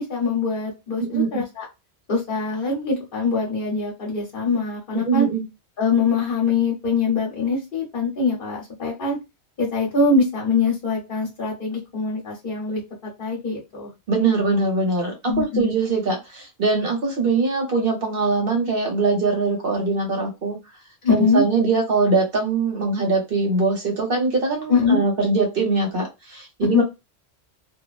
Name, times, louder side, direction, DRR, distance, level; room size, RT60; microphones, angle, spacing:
voice 1, 0.0-1.7 2.1-5.3 5.8-9.2 9.6-13.9 15.3-15.7 21.0-21.4 24.7-25.0 26.7-26.8, left 4 dB, 50° left, -3 dB, 1.1 m, -23 dB
voice 2, 1.1-1.4 5.1-5.4 14.1-20.6 21.1-26.8, right 3 dB, 55° right, 1 dB, 1.1 m, -22 dB
2.5 x 2.1 x 2.3 m, 0.23 s
omnidirectional pair, 1.1 m